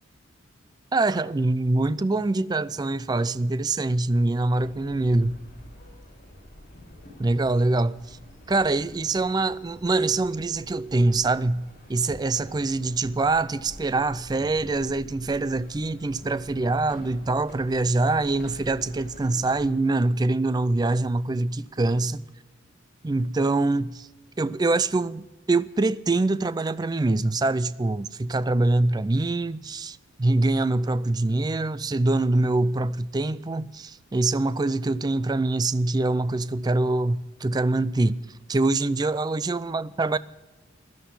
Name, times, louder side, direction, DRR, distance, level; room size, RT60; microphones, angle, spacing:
voice 1, 0.9-5.4 7.2-8.2 8.5-22.2 23.0-24.1 24.4-38.2 38.5-40.2, right 2 dB, 20° right, 0.4 m, -24 dB
sound 1, 4.6-19.7, equal, 40° left, 6.7 m, -47 dB
16.0 x 12.0 x 5.6 m
head